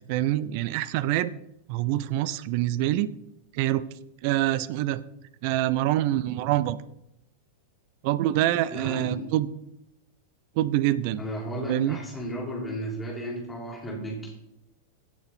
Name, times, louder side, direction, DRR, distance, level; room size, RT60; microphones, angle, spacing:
voice 1, 0.1-1.3 1.7-3.1 3.5-3.8 4.2-5.0 5.4-6.8 8.0-9.5 10.6-11.2 11.7-12.0, right 14 dB, 45° right, 17 dB, 0.5 m, -25 dB
voice 2, 8.7-9.3 11.2-14.3, equal, 15° left, -2 dB, 4.2 m, -34 dB
16.5 x 6.8 x 4.2 m, 0.83 s
figure-of-eight pair, 90°, 0 cm